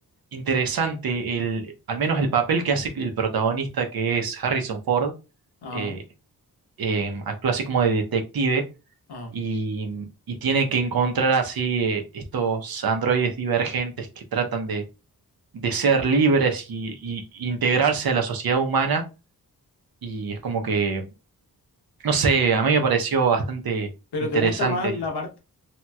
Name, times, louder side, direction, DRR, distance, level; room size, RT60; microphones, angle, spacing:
voice 1, 0.3-5.1 5.7-6.0 6.8-8.6 9.3-14.8 15.5-19.0 20.0-21.1 22.0-23.9 24.3-24.8, right 5 dB, 70° right, 0.7 m, -24 dB
voice 2, 5.6-6.0 9.1-9.3 24.1-25.4, left 2 dB, 90° left, 0.9 m, -29 dB
2.9 x 2.8 x 2.2 m
cardioid pair, 55°, 38 cm